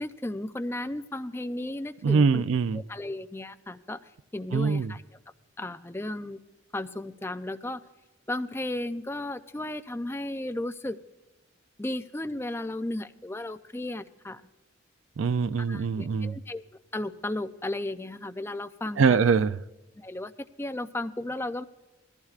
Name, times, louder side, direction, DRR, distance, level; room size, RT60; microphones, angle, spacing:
voice 1, 0.0-2.4 2.9-4.0 4.3-5.0 5.6-6.4 6.7-7.8 8.3-11.0 11.8-14.4 15.6-16.6 16.9-19.2 20.0-20.3 20.6-21.6, left 1 dB, 10° left, 9 dB, 0.4 m, -34 dB
voice 2, 2.0-2.8 4.5-4.9 15.2-16.4 19.0-19.6, right 5 dB, 85° right, 14 dB, 0.4 m, -23 dB
20.5 x 14.5 x 2.4 m, 1.1 s
head